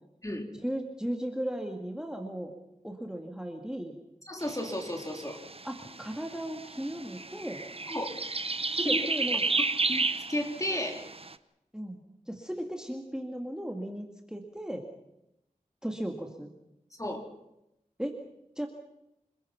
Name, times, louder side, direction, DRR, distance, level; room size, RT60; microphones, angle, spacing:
voice 1, 0.6-2.5 2.8-4.0 5.6-7.6 8.7-9.4 11.7-12.0 12.3-14.9 15.8-16.5 18.0-18.2 18.6-18.7, right 1 dB, 5° right, 3 dB, 2.3 m, -36 dB
voice 2, 4.3-5.4 7.9-8.1 8.8-9.1 9.9-11.1 17.0-17.2, left 1 dB, 20° left, 3 dB, 3.7 m, -33 dB
sound 1, 4.4-11.3, right 3 dB, 40° right, 0.9 m, -32 dB
27.0 x 21.0 x 5.8 m, 0.87 s
wide cardioid pair, 50°, 14 cm